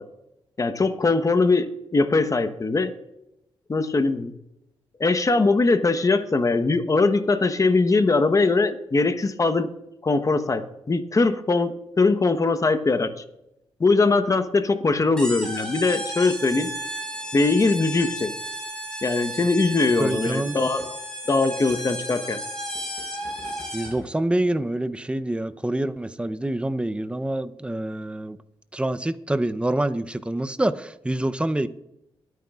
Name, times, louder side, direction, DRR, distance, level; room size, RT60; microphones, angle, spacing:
voice 1, 0.6-2.9 3.7-4.3 5.0-9.7 10.0-13.1 13.8-16.7 17.3-18.3 19.0-20.8 21.3-22.4, left 3 dB, 35° left, 1.1 m, -21 dB
sound 1, 15.2-24.1, equal, 10° left, 5.4 m, -34 dB
voice 2, 20.0-20.5 23.7-28.4 28.7-31.7, right 1 dB, 10° right, 0.7 m, -26 dB
23.0 x 9.4 x 2.5 m
cardioid pair, 70°, 10 cm